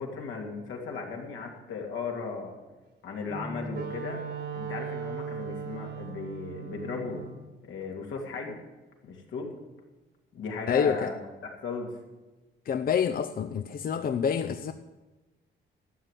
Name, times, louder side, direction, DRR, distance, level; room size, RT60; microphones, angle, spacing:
voice 1, 0.0-2.6 3.0-4.2 4.5-7.2 7.6-8.6 9.0-9.5 10.3-11.2 11.6-11.9, left 4 dB, 75° left, 0 dB, 2.8 m, -36 dB
Wind instrument woodwind instrument, 3.3-7.4, right 6 dB, 60° right, 1.7 m, -38 dB
voice 2, 10.7-11.1 12.7-14.7, left 7 dB, 50° left, 9 dB, 0.6 m, -27 dB
12.5 x 7.7 x 8.3 m, 1.2 s
cardioid pair, 90°, 20 cm